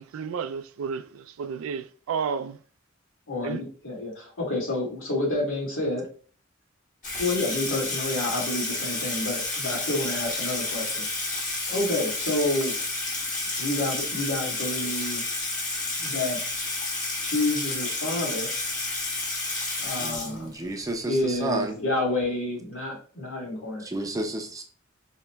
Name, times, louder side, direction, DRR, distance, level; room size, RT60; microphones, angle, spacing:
voice 1, 0.0-2.6 3.4-3.6, right 6 dB, 75° right, 0.3 m, -32 dB
voice 2, 3.3-6.0 7.2-11.0 11.7-12.8 13.6-15.2 16.0-16.4 17.2-18.5 19.8-20.5 21.1-23.9, left 2 dB, 90° left, 2.0 m, -29 dB
Water tap faucet / Sink (filling or washing), 7.0-20.8, left 2 dB, 40° left, 1.4 m, -30 dB
voice 3, 20.0-21.7 23.8-24.6, right 2 dB, 15° right, 0.5 m, -31 dB
5.4 x 2.9 x 2.2 m
head